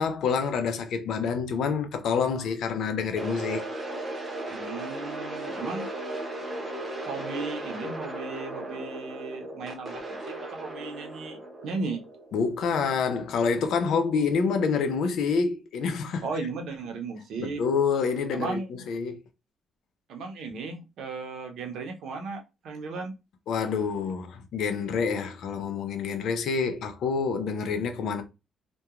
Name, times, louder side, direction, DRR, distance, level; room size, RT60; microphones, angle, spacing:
voice 1, 0.0-3.6 12.3-16.3 17.4-18.6 18.9-19.2 23.5-28.2, left 5 dB, 75° left, 0.5 m, -27 dB
sound 1, 3.2-13.2, right 1 dB, 30° right, 0.9 m, -36 dB
voice 2, 4.5-5.9 6.9-12.0 16.2-17.6 18.3-18.7 20.1-23.1, right 4 dB, 75° right, 0.7 m, -36 dB
2.8 x 2.2 x 2.3 m
cardioid pair, 90°, 0 cm